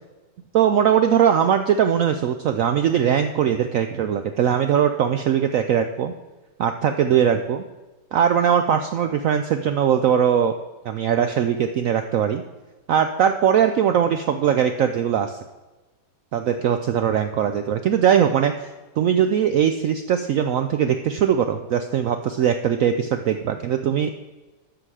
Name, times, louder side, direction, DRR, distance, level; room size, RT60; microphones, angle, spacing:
voice 1, 0.5-6.1 6.6-7.6 8.1-10.5 10.8-12.4 12.9-15.4 16.3-18.7 19.0-24.1, right 8 dB, 75° right, 8 dB, 0.7 m, -20 dB
13.0 x 6.1 x 4.8 m, 1.2 s
omnidirectional pair, 1.9 m